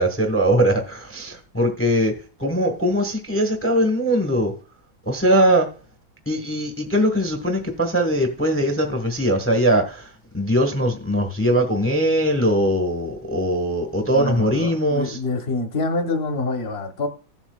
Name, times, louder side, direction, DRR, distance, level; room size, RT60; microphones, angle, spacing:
voice 1, 0.0-2.1 2.4-4.5 5.1-5.7 6.3-10.1 10.3-15.2, equal, 10° left, 0.9 m, -21 dB
voice 2, 14.1-17.1, left 3 dB, 40° left, 1.0 m, -26 dB
15.5 x 7.2 x 2.3 m
omnidirectional pair, 2.2 m